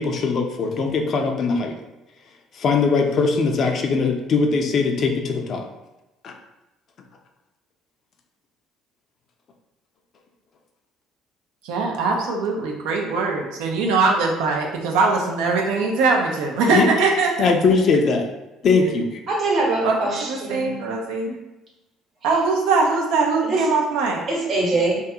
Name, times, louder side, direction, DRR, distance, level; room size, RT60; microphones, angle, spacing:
voice 1, 0.0-1.7 2.5-5.7 6.2-6.3 16.7-16.9 17.4-18.3 18.6-19.1, left 4 dB, 55° left, 3 dB, 0.4 m, -20 dB
voice 2, 11.6-17.5 18.8-18.9 19.8-21.4 22.2-24.2, right 4 dB, 75° right, 1 dB, 0.4 m, -21 dB
voice 3, 19.3-20.7 23.4-23.6 24.3-25.0, right 2 dB, 55° right, -3 dB, 0.9 m, -23 dB
2.3 x 2.3 x 2.7 m, 1.0 s
hypercardioid pair, 65°, 0 cm